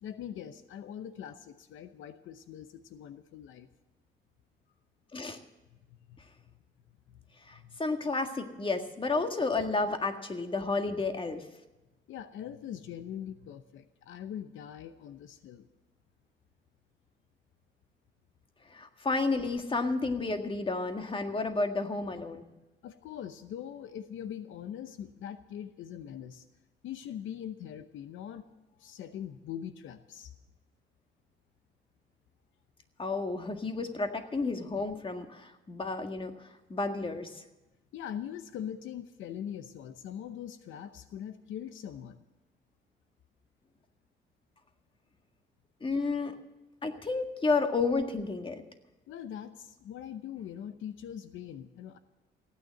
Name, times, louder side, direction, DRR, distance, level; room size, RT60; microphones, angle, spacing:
voice 1, 0.0-3.7 6.1-6.2 7.1-7.3 7.6-7.7 12.1-15.7 22.8-26.5 26.8-28.4 28.7-30.3 37.9-42.2 49.1-52.0, left 9 dB, 80° left, 11 dB, 0.8 m, -42 dB
voice 2, 7.5-11.4 18.7-22.5 33.0-36.3 36.7-37.4 45.8-46.3 46.8-48.6, left 3 dB, 25° left, 6 dB, 1.8 m, -31 dB
16.0 x 9.5 x 7.6 m, 1.0 s
cardioid pair, 90°, 20 cm